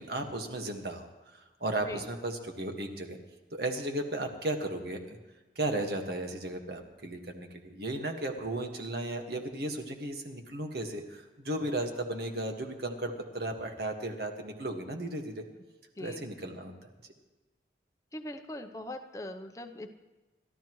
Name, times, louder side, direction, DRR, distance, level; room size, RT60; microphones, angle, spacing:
voice 1, 0.0-3.2 3.5-5.2 5.6-15.4 16.0-16.7 17.0-17.1, right 1 dB, 65° right, 4 dB, 1.7 m, -35 dB
voice 2, 18.1-19.9, left 1 dB, 20° left, 6 dB, 0.7 m, -41 dB
29.5 x 13.0 x 3.2 m, 1.2 s
head